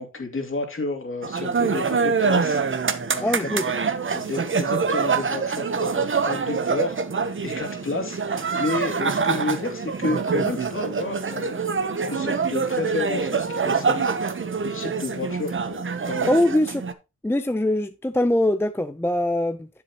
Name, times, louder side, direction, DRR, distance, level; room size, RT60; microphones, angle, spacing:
voice 1, 0.0-3.5 4.1-16.4, left 3 dB, 40° left, 2.7 m, -31 dB
sound 1, 1.2-16.9, right 5 dB, 40° right, 0.9 m, -25 dB
voice 2, 3.2-3.7 16.3-16.8 17.2-19.7, left 1 dB, 10° left, 0.5 m, -22 dB
9.9 x 7.3 x 2.9 m
cardioid pair, 80°, 32 cm